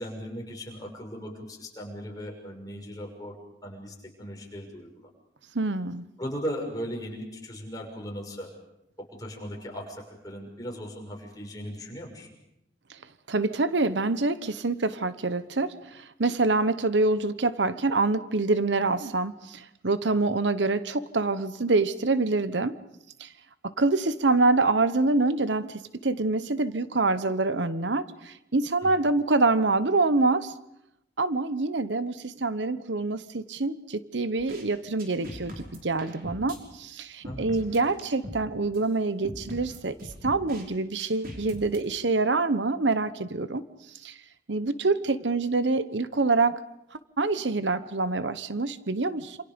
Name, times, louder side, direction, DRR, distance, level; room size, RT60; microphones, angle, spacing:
voice 1, 0.0-3.3 3.6-5.1 6.2-8.5 9.1-12.3 28.8-28.9 37.2-37.6, equal, 20° left, 0 dB, 6.0 m, -38 dB
voice 2, 5.5-6.0 13.3-22.7 23.2-23.3 23.6-30.5 31.2-40.0 40.2-43.6 44.0-44.1 44.5-46.6 47.2-49.4, right 3 dB, 90° right, 13 dB, 1.1 m, -26 dB
sound 1, 34.4-34.6 35.0-36.6 37.2-38.4 38.7-38.8 39.2-40.6 41.0-41.8, equal, 55° right, 5.5 m, -40 dB
27.5 x 27.5 x 5.2 m, 0.84 s
head